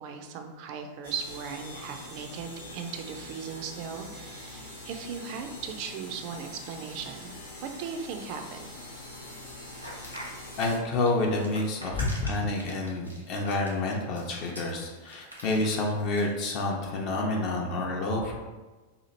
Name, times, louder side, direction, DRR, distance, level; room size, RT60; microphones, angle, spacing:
voice 1, 0.0-8.7, right 6 dB, 45° right, 5 dB, 0.4 m, -38 dB
sound 1, 1.0-10.8, left 1 dB, 80° left, 1.0 m, -44 dB
sound 2, 9.8-16.3, equal, 90° right, 0.8 m, -44 dB
voice 2, 10.6-18.3, left 2 dB, 40° left, 0 dB, 0.6 m, -28 dB
2.8 x 2.5 x 4.2 m, 1.3 s
figure-of-eight pair, 90°, 0 cm